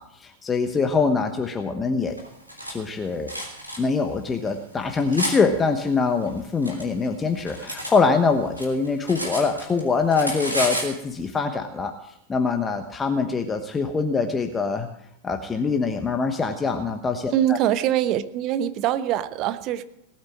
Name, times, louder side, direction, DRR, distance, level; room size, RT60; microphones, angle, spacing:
voice 1, 0.0-2.1 2.7-3.3 3.8-11.9 12.3-14.9 15.2-17.3, left 4 dB, 15° left, 6 dB, 1.1 m, -24 dB
Cutlery silverware, 2.2-2.7 3.3-3.8 4.5-5.4 6.2-8.0 8.3-9.8 10.1-10.9, equal, 90° right, 3.4 m, -31 dB
voice 2, 17.3-19.8, right 11 dB, 40° right, 13 dB, 0.9 m, -23 dB
18.5 x 8.8 x 7.4 m, 0.81 s
figure-of-eight pair, 90°, 0 cm